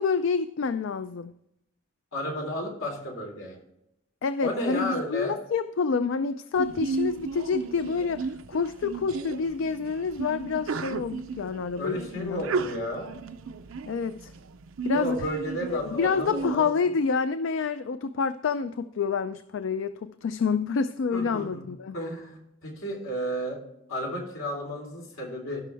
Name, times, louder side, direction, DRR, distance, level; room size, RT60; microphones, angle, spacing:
voice 1, 0.0-1.3 4.2-12.4 13.9-14.3 14.8-15.2 15.7-22.0, left 5 dB, 65° left, 12 dB, 0.4 m, -28 dB
voice 2, 2.1-3.6 4.4-5.4 11.8-13.1 14.9-16.9 21.1-21.6 21.9-23.6 23.9-25.6, equal, 85° left, 0 dB, 3.4 m, -33 dB
Sneeze, 6.6-16.5, right 4 dB, 80° right, 0.5 m, -34 dB
15.5 x 6.1 x 3.4 m, 0.82 s
head